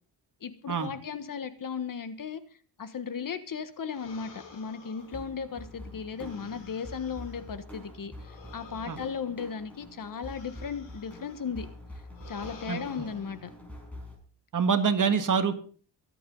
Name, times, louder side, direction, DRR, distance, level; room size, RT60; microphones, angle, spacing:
voice 1, 0.4-2.4 2.8-11.7 12.3-13.5, left 6 dB, 50° left, 11 dB, 1.5 m, -36 dB
sound 1, 3.9-7.5 8.2-11.5 12.1-13.5, left 5 dB, 85° left, 4.8 m, -51 dB
sound 2, 5.0-14.2, left 1 dB, 5° left, 5.5 m, -46 dB
voice 2, 12.7-13.1 14.5-15.6, right 6 dB, 45° right, 8 dB, 1.7 m, -26 dB
23.0 x 8.5 x 4.0 m, 0.42 s
cardioid pair, 110°, 43 cm